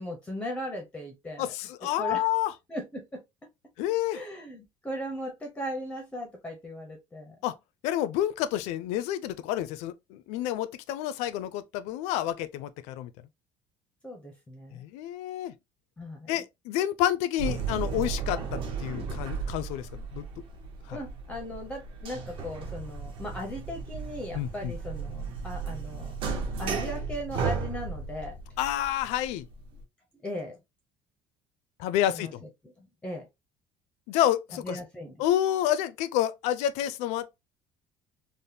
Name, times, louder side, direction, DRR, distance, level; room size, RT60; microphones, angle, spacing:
voice 1, 0.0-1.5 2.0-2.3 2.7-3.5 4.1-7.4 14.0-14.8 16.0-16.3 20.9-26.2 26.6-28.4 30.2-30.6 32.1-32.5 32.8-33.3 34.6-35.2, equal, 10° left, 0.5 m, -38 dB
voice 2, 1.4-2.5 3.8-4.2 7.4-7.5 7.8-13.1 14.7-15.5 16.3-20.2 20.9-21.0 24.3-24.7 28.6-29.5 31.8-32.4 34.1-34.8 35.2-37.4, left 12 dB, 75° left, 0.4 m, -29 dB
sound 1, 17.4-29.8, right 5 dB, 50° right, 0.8 m, -35 dB
3.4 x 2.1 x 2.7 m
cardioid pair, 165°, 12 cm